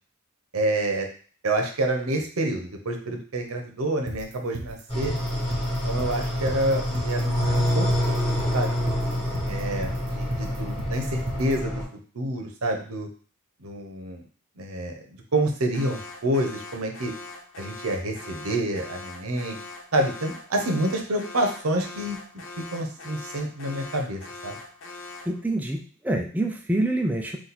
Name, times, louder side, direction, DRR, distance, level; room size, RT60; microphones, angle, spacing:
voice 1, 0.5-1.1 1.4-5.1 5.7-8.9 9.5-11.8 12.1-13.1 13.6-14.2 14.6-14.9 15.3-17.1 17.6-19.6 19.9-22.2 22.6-24.6, right 1 dB, 85° right, 4 dB, 0.9 m, -28 dB
sound 1, 4.1-11.5, right 2 dB, 60° right, 0.6 m, -36 dB
sound 2, 4.9-11.8, equal, 30° left, 2.0 m, -27 dB
Alarm, 15.7-25.4, left 3 dB, 65° left, 0.7 m, -42 dB
voice 2, 25.3-27.4, right 1 dB, 10° right, 2 dB, 0.3 m, -26 dB
4.0 x 2.5 x 4.2 m, 0.42 s
head